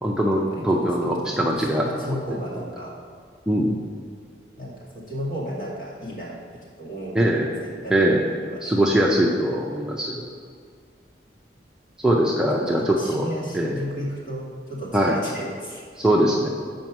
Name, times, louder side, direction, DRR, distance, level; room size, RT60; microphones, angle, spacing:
voice 1, 0.0-2.6 3.5-3.8 7.1-7.5 7.9-8.3 8.6-10.2 12.0-13.3 13.5-13.8 14.9-15.2 16.0-16.5, right 1 dB, 5° right, -3 dB, 0.5 m, -22 dB
voice 2, 1.0-2.9 4.5-6.4 6.8-7.9 8.4-8.7 12.7-15.8, equal, 45° left, -5 dB, 2.1 m, -34 dB
7.5 x 5.3 x 5.9 m, 2.1 s
head